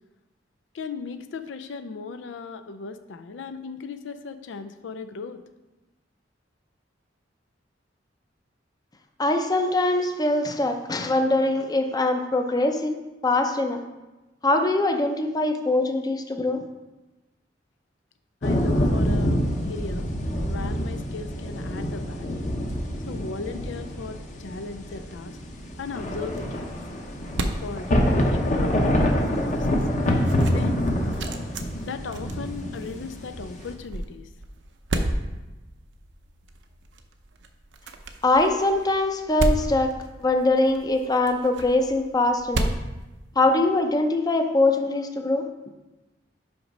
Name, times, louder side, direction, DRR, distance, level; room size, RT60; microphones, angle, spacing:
voice 1, 0.7-5.4 18.4-20.1 20.5-22.5 23.1-25.4 25.8-26.7 27.6-29.8 30.5-30.8 31.8-34.3, left 4 dB, 90° left, 9 dB, 0.4 m, -37 dB
voice 2, 9.2-13.0 13.2-13.8 14.4-16.6 38.2-42.7 43.4-45.5, left 2 dB, 20° left, 5 dB, 0.5 m, -22 dB
sound 1, 18.4-33.7, equal, 40° left, 0.9 m, -26 dB
sound 2, 25.1-43.8, right 1 dB, 70° right, 0.6 m, -34 dB
5.9 x 5.1 x 5.3 m, 1.1 s
head